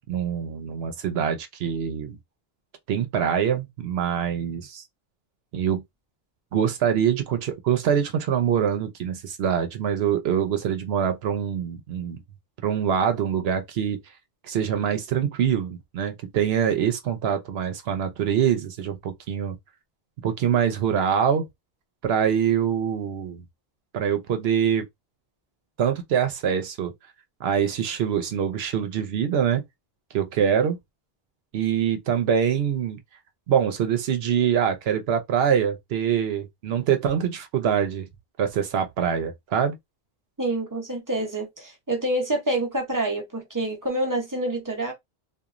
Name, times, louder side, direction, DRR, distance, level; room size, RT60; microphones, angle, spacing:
voice 1, 0.1-2.2 2.9-4.8 5.5-5.8 6.5-12.2 12.6-14.0 14.4-19.6 20.2-21.5 22.0-23.4 23.9-24.9 25.8-26.9 27.4-29.6 30.1-30.8 31.5-33.0 33.5-38.1 38.4-39.8, right 8 dB, 80° right, 0.8 m, -24 dB
voice 2, 40.4-44.9, right 1 dB, 20° right, 0.6 m, -27 dB
2.9 x 2.3 x 2.4 m
omnidirectional pair, 1.0 m